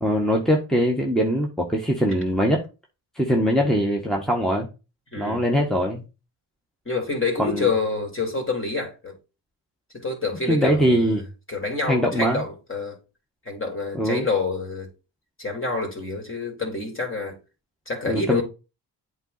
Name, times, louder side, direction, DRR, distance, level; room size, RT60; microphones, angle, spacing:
voice 1, 0.0-2.6 3.1-4.7 5.2-6.0 7.4-7.7 10.5-11.2 11.9-12.4 13.9-14.3 18.0-18.4, equal, ahead, 1.5 m, -22 dB
voice 2, 3.5-3.8 5.1-5.4 6.9-9.1 9.9-11.1 11.5-13.0 13.5-14.9 15.4-17.4 17.9-18.4, left 4 dB, 25° left, 3.5 m, -27 dB
8.0 x 4.1 x 4.2 m
hypercardioid pair, 40°, 46 cm